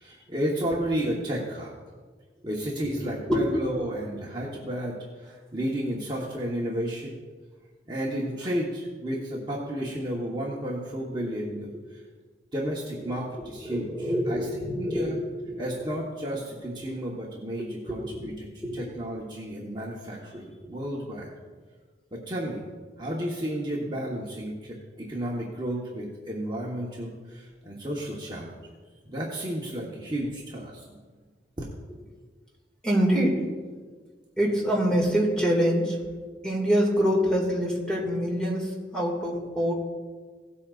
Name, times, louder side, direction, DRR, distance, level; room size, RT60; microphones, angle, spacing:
voice 1, 0.0-1.7 2.4-7.1 7.9-12.0 12.5-15.2 15.6-18.5 18.7-21.3 22.1-22.6 23.0-28.5 29.0-30.8 31.6-31.7, equal, 25° right, -4 dB, 1.2 m, -32 dB
voice 2, 13.4-15.2 15.5-15.6 17.6-18.3 18.6-18.8 32.8-33.5 34.4-36.0 36.4-39.7, equal, 5° left, -3 dB, 2.2 m, -25 dB
17.0 x 8.5 x 2.5 m, 1.5 s
head